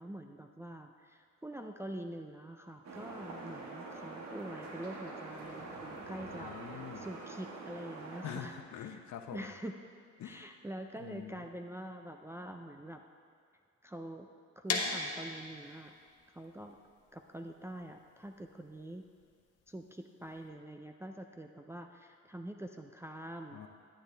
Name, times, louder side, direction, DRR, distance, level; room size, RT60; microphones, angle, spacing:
voice 1, 0.0-8.5 8.9-9.0 9.3-9.8 10.2-13.0 13.8-14.3 14.6-15.9 16.3-16.8 17.1-19.0 19.7-23.6, right 1 dB, 10° right, 3 dB, 0.4 m, -45 dB
sound 1, 2.8-8.4, right 2 dB, 70° right, 1.6 m, -45 dB
voice 2, 6.3-7.1 8.2-9.5 10.2-10.6 11.0-11.5 23.5-23.7, left 9 dB, 70° left, 6 dB, 0.9 m, -45 dB
sound 2, 14.7-20.5, left 4 dB, 55° left, 1.3 m, -40 dB
11.5 x 8.8 x 3.4 m, 2.1 s
cardioid pair, 90°, 30 cm